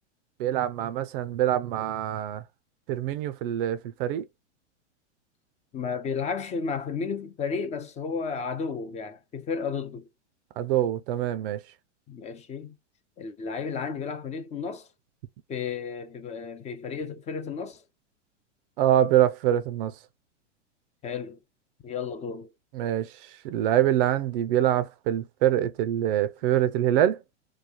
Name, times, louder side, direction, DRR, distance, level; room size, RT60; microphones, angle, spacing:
voice 1, 0.4-2.4 2.9-4.3 10.6-11.6 18.8-19.9 22.7-23.1 23.4-27.2, right 11 dB, 50° right, 0.5 m, -24 dB
voice 2, 5.7-10.1 12.1-12.8 13.2-14.9 15.5-17.8 21.0-21.4 21.8-22.5, left 5 dB, 20° left, 0.5 m, -33 dB
3.1 x 2.3 x 3.7 m
hypercardioid pair, 110°, 36 cm